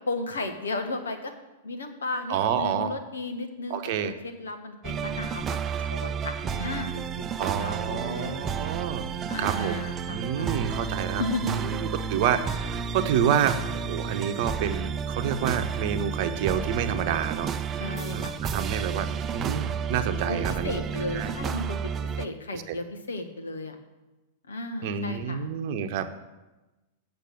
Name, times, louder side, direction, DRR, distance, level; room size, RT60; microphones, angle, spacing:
voice 1, 0.1-1.3 1.6-5.4 5.8-7.0 7.6-8.4 9.3-10.6 11.2-11.8 17.8-18.4 20.2-23.8 24.5-25.5, left 2 dB, 80° left, 6 dB, 1.3 m, -34 dB
voice 2, 2.3-2.9 3.7-4.1 7.4-9.1 9.4-17.5 18.1-21.3 22.5-22.8 24.8-26.1, right 8 dB, 50° right, 9 dB, 0.9 m, -29 dB
sound 1, 4.8-22.3, right 7 dB, 25° right, 0.5 m, -31 dB
8.4 x 6.8 x 7.9 m, 1.1 s
figure-of-eight pair, 100°, 0 cm